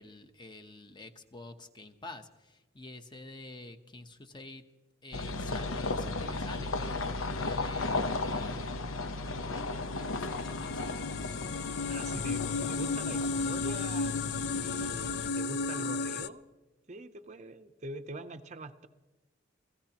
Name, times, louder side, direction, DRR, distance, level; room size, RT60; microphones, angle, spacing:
voice 1, 0.0-4.6 5.0-11.1, left 2 dB, 20° left, 7 dB, 0.9 m, -48 dB
sound 1, 5.1-15.3, left 3 dB, 80° left, 0.9 m, -35 dB
voice 2, 5.9-6.3 11.9-14.1 14.5-16.4 16.9-18.9, right 2 dB, 35° right, 9 dB, 0.6 m, -44 dB
sound 2, 9.5-16.3, left 4 dB, 50° left, 0.4 m, -34 dB
28.0 x 16.0 x 2.9 m, 1.1 s
head